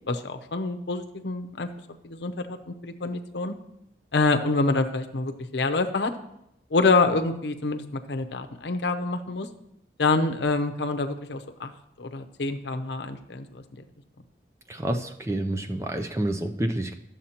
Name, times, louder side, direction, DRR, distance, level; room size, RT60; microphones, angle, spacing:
voice 1, 0.1-1.7 2.0-3.5 4.1-6.1 6.7-9.5 10.0-11.7 12.0-13.6, left 3 dB, 80° left, 6 dB, 0.7 m, -26 dB
voice 2, 14.7-16.9, right 1 dB, 15° right, 6 dB, 0.4 m, -28 dB
12.5 x 7.2 x 2.9 m, 0.81 s
head